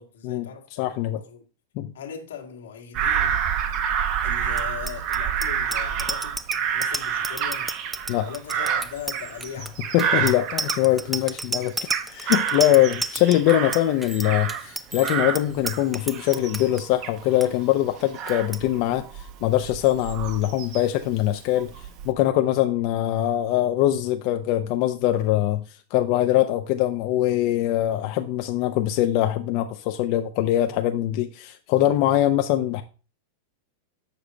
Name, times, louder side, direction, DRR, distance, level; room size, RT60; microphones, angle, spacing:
voice 1, 0.0-1.4 1.9-3.4 4.2-6.4 6.7-7.8 8.2-9.8 30.6-30.8, left 7 dB, 90° left, 1.6 m, -39 dB
voice 2, 0.8-1.2 1.8-1.9 8.1-8.3 9.9-21.7 22.0-25.6 25.9-32.8, left 13 dB, 50° left, 0.5 m, -22 dB
Bird vocalization bird call bird song / Crow, 2.9-11.3 11.6-14.7 15.0-21.0 21.6-22.1, right 8 dB, 40° right, 0.9 m, -28 dB
Bicycle bell, 4.5-16.8 17.2-17.5 17.7-18.0 18.3-18.6, right 2 dB, 5° right, 0.3 m, -32 dB
6.9 x 5.1 x 4.2 m
supercardioid pair, 140°, 0 cm